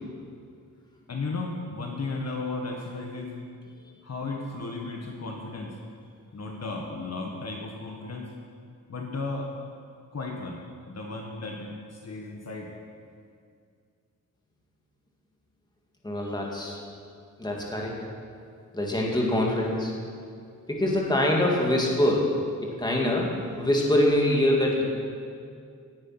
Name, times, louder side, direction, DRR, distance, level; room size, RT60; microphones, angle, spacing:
voice 1, 1.1-3.4 4.0-5.8 6.3-8.3 8.9-9.5 10.1-10.6 10.9-12.7, left 3 dB, 50° left, 1 dB, 1.5 m, -34 dB
voice 2, 16.0-16.8 17.4-18.0 18.7-19.9 20.7-24.8, left 1 dB, 15° left, -2 dB, 2.4 m, -24 dB
17.5 x 9.6 x 6.0 m, 2.3 s
wide cardioid pair, 125°, 32 cm